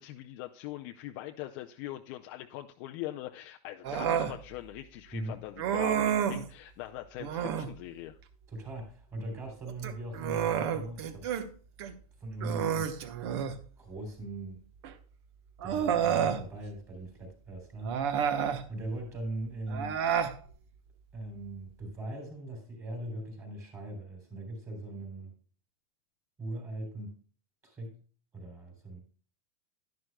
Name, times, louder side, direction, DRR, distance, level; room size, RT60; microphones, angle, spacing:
voice 1, 0.0-8.2, left 15 dB, 30° left, 5 dB, 0.4 m, -42 dB
Human voice, 3.8-4.4 5.6-6.5 7.2-7.7 9.7-11.5 11.8-11.9 12.4-13.6 14.8-14.9 15.6-16.4 17.8-18.6 19.7-20.4, right 8 dB, 45° right, 1.1 m, -30 dB
voice 2, 5.1-5.4 8.5-11.3 12.2-12.9 13.8-14.6 15.6-18.0 18.7-20.0 21.1-25.3 26.4-27.2 27.6-28.0 28.3-29.0, right 1 dB, 15° right, 3 dB, 3.4 m, -40 dB
11.5 x 11.0 x 2.2 m, 0.40 s
supercardioid pair, 175°, 19 cm